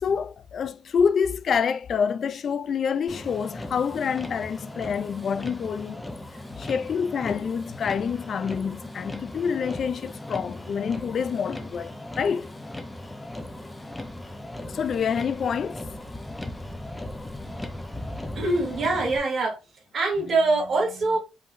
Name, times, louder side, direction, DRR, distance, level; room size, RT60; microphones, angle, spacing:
voice 1, 0.0-6.0 6.5-12.5 14.7-15.8, left 6 dB, 50° left, 0.3 m, -27 dB
Motor vehicle (road), 3.1-19.2, left 1 dB, 10° left, 0.7 m, -38 dB
voice 2, 18.3-19.6 19.9-21.2, right 3 dB, 50° right, 2.5 m, -24 dB
5.1 x 3.7 x 2.5 m
cardioid pair, 115°, 0 cm